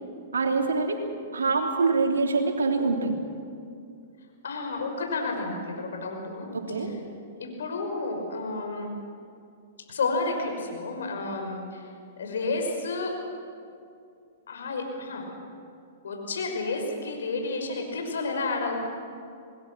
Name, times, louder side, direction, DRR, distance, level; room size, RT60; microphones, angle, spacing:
voice 1, 0.3-1.0 1.3-3.1 6.5-6.9, right 4 dB, 85° right, 2 dB, 3.3 m, -25 dB
voice 2, 4.4-7.0 7.4-8.9 9.9-11.9 12.2-13.1 14.5-15.2 16.0-18.8, left 3 dB, 75° left, 3 dB, 5.7 m, -31 dB
27.0 x 20.5 x 6.3 m, 2.4 s
hypercardioid pair, 115°, 0 cm